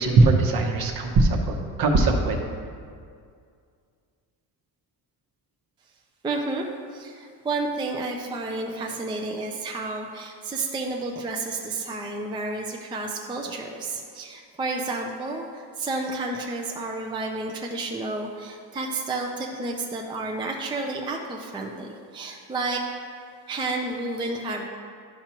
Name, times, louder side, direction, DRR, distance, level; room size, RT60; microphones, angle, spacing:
voice 1, 0.0-2.4, right 3 dB, 60° right, 3 dB, 1.0 m, -20 dB
voice 2, 6.2-6.6 6.9-23.1 23.5-24.7, right 2 dB, 10° right, 1 dB, 0.4 m, -31 dB
11.5 x 5.7 x 2.9 m, 2.2 s
cardioid pair, 145°, 41 cm